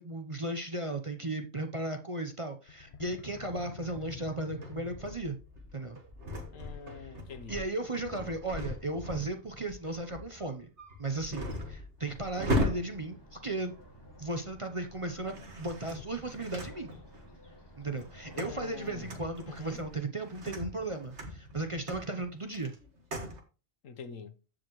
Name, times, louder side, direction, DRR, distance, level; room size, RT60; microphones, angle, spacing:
voice 1, 0.0-5.4 5.7-6.0 7.0-7.1 7.5-10.7 11.0-13.7 14.2-16.9 17.8-22.7, right 2 dB, 30° right, 0.7 m, -36 dB
sound 1, 2.7-5.5, left 6 dB, 50° left, 0.8 m, -47 dB
sound 2, 4.6-14.4 15.1-17.3 17.8-23.4, left 1 dB, 60° right, 2.0 m, -39 dB
voice 2, 6.5-7.7 18.3-19.1 19.5-19.8 23.8-24.3, left 5 dB, 80° left, 1.3 m, -45 dB
sound 3, 12.0-19.9, equal, 20° left, 2.0 m, -53 dB
14.5 x 5.1 x 3.1 m
omnidirectional pair, 1.3 m